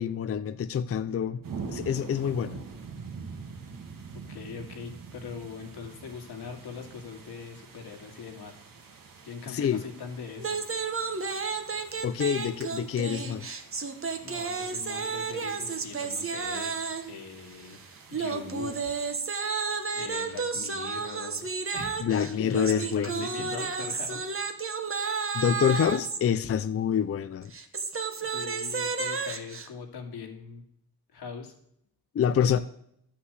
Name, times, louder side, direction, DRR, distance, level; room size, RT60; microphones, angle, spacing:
voice 1, 0.0-1.4 1.7-2.6 9.5-9.8 12.0-13.6 22.0-23.5 25.3-27.5 32.1-32.6, left 8 dB, 35° left, 0.5 m, -27 dB
sound 1, 1.4-19.1, right 5 dB, 55° right, 1.7 m, -46 dB
voice 2, 4.1-8.6 9.2-10.6 14.2-16.7 17.1-17.8 18.1-18.8 19.0-19.5 19.9-24.3 28.1-30.6 31.1-31.5 32.3-32.6, left 5 dB, 80° left, 2.4 m, -41 dB
sound 2, 10.4-17.2 18.1-26.2 27.4-29.7, right 5 dB, 35° right, 1.2 m, -32 dB
12.0 x 5.8 x 8.0 m
cardioid pair, 95°, 39 cm